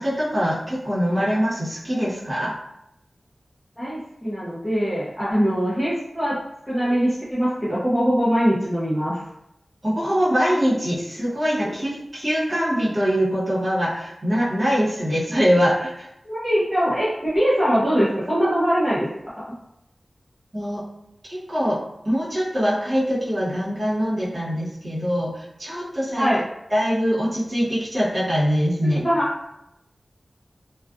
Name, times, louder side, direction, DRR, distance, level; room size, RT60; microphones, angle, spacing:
voice 1, 0.0-2.6 9.8-16.1 20.5-20.8 21.3-26.3 26.7-29.1, equal, 45° right, -8 dB, 1.1 m, -23 dB
voice 2, 3.8-9.2 16.2-19.1 19.4-19.5 26.2-26.4 28.9-29.3, equal, ahead, -10 dB, 0.7 m, -22 dB
2.4 x 2.3 x 2.4 m, 0.82 s
wide cardioid pair, 75°, 0 cm